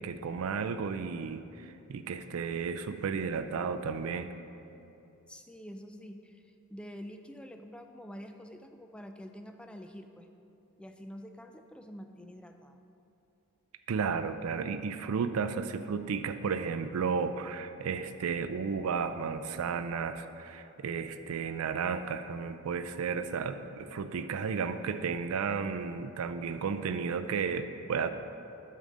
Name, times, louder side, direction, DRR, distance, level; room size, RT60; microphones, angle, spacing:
voice 1, 0.0-4.3 13.9-28.1, right 5 dB, 70° right, 9 dB, 0.4 m, -33 dB
voice 2, 5.3-10.3 10.8-12.8, equal, 5° left, 6 dB, 0.3 m, -47 dB
8.7 x 6.5 x 3.8 m, 2.8 s
head